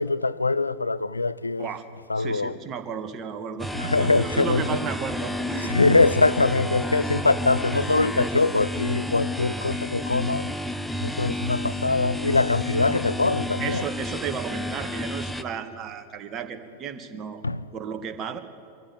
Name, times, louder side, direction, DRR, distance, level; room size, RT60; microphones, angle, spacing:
voice 1, 0.0-1.7 2.1-2.6 3.8-4.6 5.7-10.5 11.0-13.8 17.4-17.6, left 3 dB, 80° left, 0.5 m, -23 dB
voice 2, 2.1-6.0 13.6-17.4 17.7-18.4, right 7 dB, 30° right, 1.8 m, -34 dB
sound 1, 3.6-15.4, left 1 dB, 5° left, 0.9 m, -31 dB
24.0 x 14.5 x 8.6 m
figure-of-eight pair, 90°, 0 cm